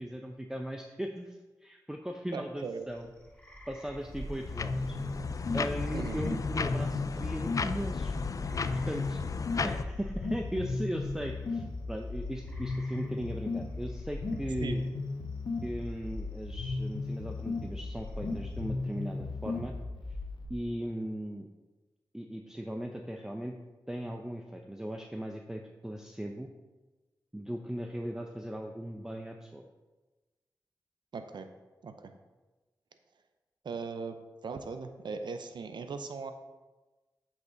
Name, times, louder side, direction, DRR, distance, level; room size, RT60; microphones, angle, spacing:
voice 1, 0.0-3.1 3.7-5.0 5.5-8.1 8.7-9.2 9.6-14.8 15.6-19.7 20.5-21.5 22.1-23.6 23.9-26.5 27.3-29.7, equal, 5° right, 3 dB, 0.6 m, -38 dB
voice 2, 2.3-2.9 5.9-6.2 14.6-14.8 31.1-31.5 31.8-32.1 33.6-36.3, right 4 dB, 75° right, 8 dB, 0.6 m, -39 dB
sound 1, 2.7-18.9, right 1 dB, 15° left, 1.8 m, -52 dB
sound 2, 4.1-9.8, left 5 dB, 45° left, 0.4 m, -35 dB
sound 3, 4.5-20.5, left 3 dB, 75° left, 1.1 m, -36 dB
7.8 x 5.8 x 3.9 m, 1.2 s
cardioid pair, 55°, 8 cm